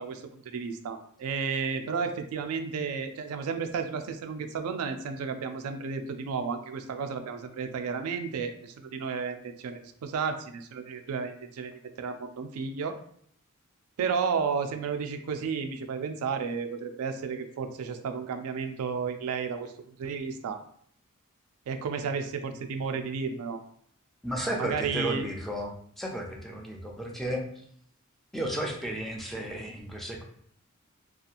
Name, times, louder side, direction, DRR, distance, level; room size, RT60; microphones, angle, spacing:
voice 1, 0.0-13.0 14.0-20.6 21.7-23.6 24.6-25.3, right 5 dB, 85° right, 7 dB, 0.3 m, -32 dB
voice 2, 24.2-27.4 28.3-30.2, right 1 dB, ahead, -1 dB, 0.4 m, -33 dB
2.8 x 2.3 x 2.5 m, 0.63 s
head